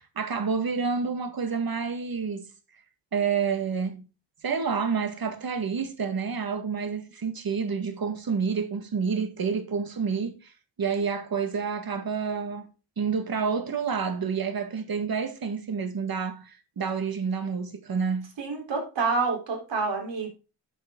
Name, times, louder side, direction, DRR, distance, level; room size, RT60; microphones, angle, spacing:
voice 1, 0.0-2.5 3.1-4.0 4.4-10.5 10.8-12.7 13.0-18.3, right 5 dB, 50° right, 1.9 m, -29 dB
voice 2, 18.4-20.3, right 4 dB, 75° right, 4.2 m, -28 dB
9.3 x 7.6 x 3.9 m
cardioid pair, 75°, 44 cm